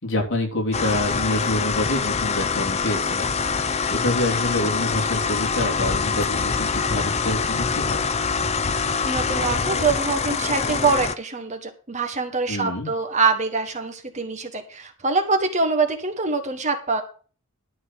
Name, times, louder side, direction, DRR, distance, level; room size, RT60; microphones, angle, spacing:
voice 1, 0.0-3.3 3.9-8.0 12.5-12.9, left 1 dB, 60° left, -1 dB, 3.5 m, -27 dB
sound 1, 0.7-11.2, left 5 dB, 30° left, 0.6 m, -24 dB
voice 2, 9.0-17.0, right 4 dB, 35° right, 5 dB, 1.5 m, -24 dB
12.5 x 4.7 x 7.7 m, 0.38 s
head